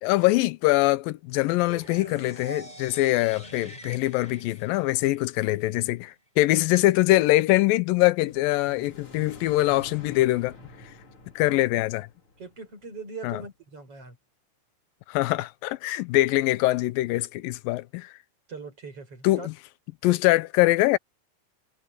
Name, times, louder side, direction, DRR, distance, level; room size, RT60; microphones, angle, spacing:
voice 1, 0.0-10.5 11.4-12.1 13.2-13.4 15.1-18.1 19.2-19.5 20.0-21.0, left 18 dB, 90° left, 2.5 m, -23 dB
sound 1, 1.7-5.6, right 1 dB, 10° left, 7.7 m, -45 dB
sound 2, 8.1-13.2, left 2 dB, 40° left, 4.0 m, -49 dB
voice 2, 12.4-14.2 18.5-19.5, right 4 dB, 40° right, 8.1 m, -41 dB
omnidirectional pair, 3.9 m